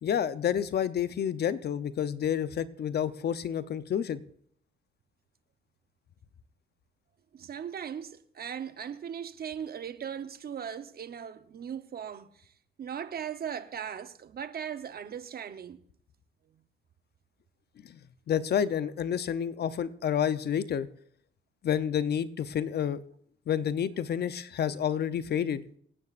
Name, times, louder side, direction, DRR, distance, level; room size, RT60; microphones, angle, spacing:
voice 1, 0.0-4.2 17.8-18.0 18.3-20.9 21.6-23.0 23.5-25.7, left 9 dB, 55° left, 0.7 m, -29 dB
voice 2, 7.3-12.5 12.8-15.8, right 8 dB, 50° right, 0.9 m, -38 dB
26.0 x 9.5 x 2.5 m
cardioid pair, 90°, 20 cm